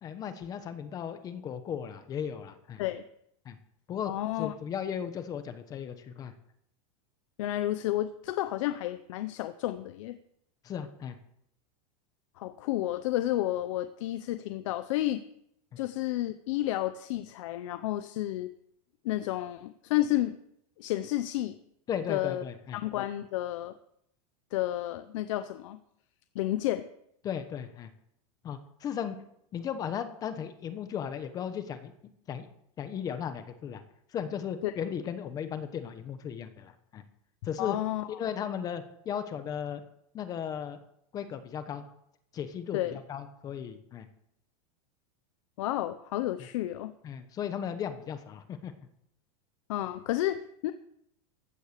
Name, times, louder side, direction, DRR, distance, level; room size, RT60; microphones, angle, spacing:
voice 1, 0.0-2.8 3.4-3.6 3.9-6.3 10.6-11.2 21.9-22.8 27.2-27.9 28.4-29.2 29.5-31.9 32.3-32.5 32.8-33.8 34.1-37.0 37.4-37.8 38.1-39.8 40.1-40.8 41.1-41.8 42.3-44.1 47.0-48.7, left 8 dB, 20° left, 10 dB, 0.9 m, -36 dB
voice 2, 4.1-4.5 7.4-10.2 12.4-15.2 15.8-18.5 19.0-20.4 20.8-21.5 22.1-22.4 22.7-23.7 24.5-25.8 26.3-26.9 34.6-34.7 37.6-38.1 42.7-42.9 45.6-46.9 49.7-50.7, left 14 dB, 55° left, 10 dB, 0.9 m, -31 dB
15.5 x 10.0 x 6.7 m, 0.74 s
supercardioid pair, 175°, 19 cm